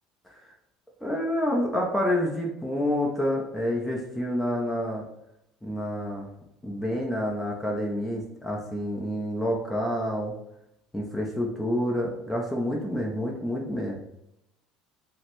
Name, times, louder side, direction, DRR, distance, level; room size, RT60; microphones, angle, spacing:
voice 1, 1.0-5.0 5.6-6.3 6.6-10.3 10.9-14.0, left 1 dB, 5° left, -2 dB, 0.8 m, -28 dB
6.2 x 2.2 x 3.1 m, 0.84 s
supercardioid pair, 120°, 0 cm